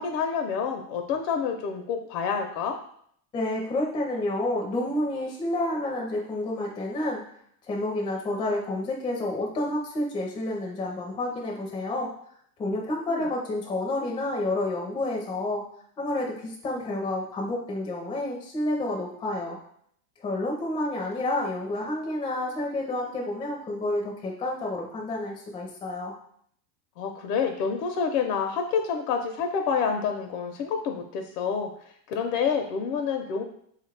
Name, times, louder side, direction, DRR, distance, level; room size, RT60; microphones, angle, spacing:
voice 1, 0.0-2.8 12.7-12.8 13.1-13.3 27.0-31.7 32.1-33.4, left 6 dB, 75° left, 4 dB, 0.7 m, -28 dB
voice 2, 3.3-7.2 7.7-12.1 12.6-15.6 16.0-19.6 20.2-26.2, left 1 dB, 10° left, -1 dB, 0.4 m, -29 dB
3.6 x 2.4 x 3.2 m, 0.64 s
supercardioid pair, 135°, 47 cm